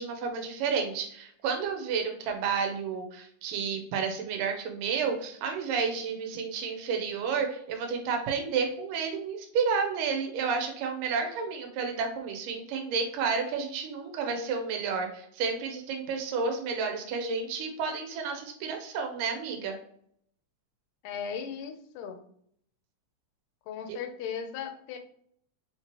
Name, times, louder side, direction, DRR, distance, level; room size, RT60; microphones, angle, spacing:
voice 1, 0.0-19.8 23.9-24.0, right 5 dB, 90° right, 3 dB, 2.4 m, -31 dB
voice 2, 21.0-22.2 23.7-25.0, left 7 dB, 90° left, 6 dB, 2.2 m, -37 dB
5.3 x 2.9 x 3.0 m, 0.65 s
omnidirectional pair, 3.7 m